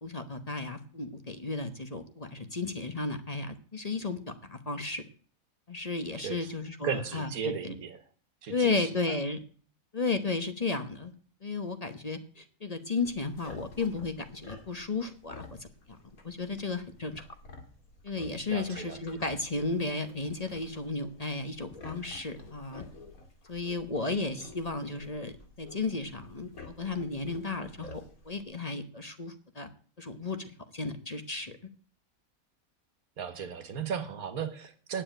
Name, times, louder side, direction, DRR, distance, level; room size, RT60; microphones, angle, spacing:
voice 1, 0.0-4.2 4.5-5.0 5.7-7.3 7.6-7.7 8.5-9.4 9.9-11.1 11.4-16.0 16.2-17.2 18.0-22.8 23.5-29.7 30.0-31.6, left 3 dB, 30° left, 1.0 m, -34 dB
voice 2, 6.2-6.5 6.8-8.0 8.4-9.2 18.5-19.0 33.2-35.0, right 6 dB, 85° right, 1.7 m, -36 dB
sound 1, 13.0-28.4, left 3 dB, 85° left, 2.6 m, -50 dB
9.7 x 7.4 x 9.0 m
omnidirectional pair, 1.5 m